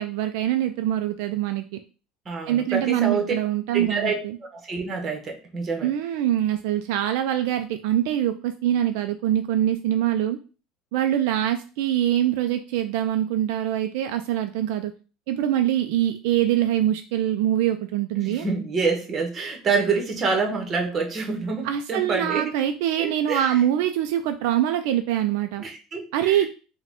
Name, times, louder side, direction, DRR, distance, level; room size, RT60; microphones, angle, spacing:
voice 1, 0.0-1.6 2.5-4.1 5.8-10.4 10.9-14.9 15.3-18.5 21.6-25.6 26.1-26.5, right 11 dB, 75° right, 7 dB, 0.4 m, -24 dB
voice 2, 2.3-3.3 3.7-4.1 4.5-5.9 18.2-22.4 23.0-23.6 25.6-26.5, right 4 dB, 25° right, 3 dB, 1.0 m, -27 dB
4.7 x 2.2 x 3.6 m, 0.35 s
cardioid pair, 145°, 0 cm